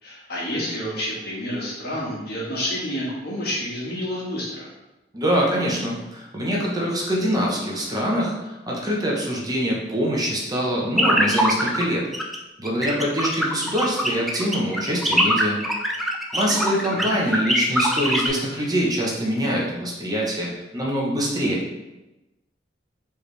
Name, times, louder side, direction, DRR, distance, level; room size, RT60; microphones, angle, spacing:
voice 1, 0.0-4.7 16.4-17.0, equal, 60° left, -5 dB, 1.4 m, -29 dB
voice 2, 5.1-12.0 12.6-15.6 16.3-21.6, equal, 20° right, -3 dB, 0.8 m, -24 dB
sound 1, 11.0-11.8 12.1-12.4 12.6-18.3, equal, ahead, 0.4 m, -22 dB
4.6 x 3.3 x 3.3 m, 1.0 s
head